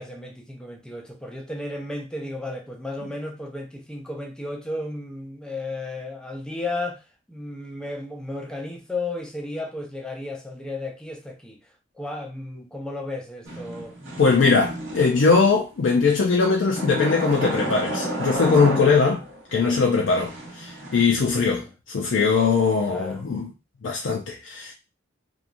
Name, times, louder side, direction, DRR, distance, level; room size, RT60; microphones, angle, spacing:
voice 1, 0.0-11.6 12.0-14.2 19.6-19.9 21.5-21.7 22.9-23.2, left 2 dB, 5° left, 0.4 m, -34 dB
sound 1, 13.4-15.5 16.8-19.4 19.9-21.0, right 1 dB, 85° right, 0.9 m, -31 dB
voice 2, 14.2-19.2 19.5-23.5 23.8-24.7, left 4 dB, 75° left, 0.5 m, -21 dB
3.0 x 2.3 x 2.5 m
head